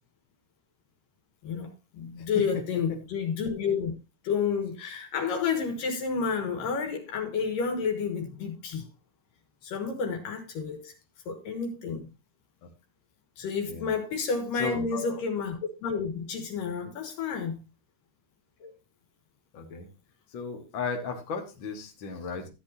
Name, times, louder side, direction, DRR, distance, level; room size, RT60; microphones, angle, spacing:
voice 1, 1.4-3.9 4.2-8.9 9.6-10.9 11.3-12.1 13.4-17.6, left 5 dB, 65° left, 2.9 m, -30 dB
voice 2, 14.5-15.2 18.6-18.7 19.5-19.9 20.3-22.5, left 5 dB, 85° left, 1.0 m, -35 dB
14.0 x 8.4 x 2.7 m
omnidirectional pair, 4.6 m